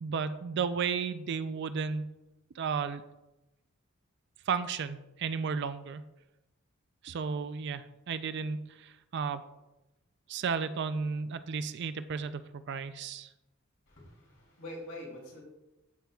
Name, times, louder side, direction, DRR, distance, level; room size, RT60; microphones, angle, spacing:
voice 1, 0.0-2.1 2.6-3.0 4.5-6.0 7.0-9.4 10.3-12.4 12.7-13.3, right 5 dB, 55° right, 12 dB, 0.4 m, -33 dB
voice 2, 13.9-15.4, left 1 dB, 70° left, -2 dB, 2.9 m, -45 dB
13.0 x 5.8 x 2.3 m, 0.97 s
head